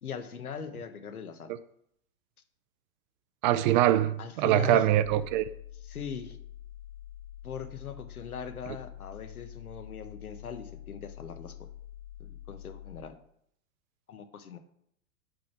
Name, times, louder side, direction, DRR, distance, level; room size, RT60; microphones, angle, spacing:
voice 1, 0.0-1.5 4.2-4.9 5.8-6.4 7.4-11.5 12.2-13.2 14.1-14.6, left 7 dB, 85° left, 8 dB, 1.3 m, -40 dB
voice 2, 3.4-5.5, right 13 dB, 35° right, 14 dB, 0.4 m, -23 dB
sound 1, 5.0-13.0, left 11 dB, 15° left, 0.6 m, -46 dB
9.1 x 5.1 x 5.9 m, 0.71 s
hypercardioid pair, 105°, 43 cm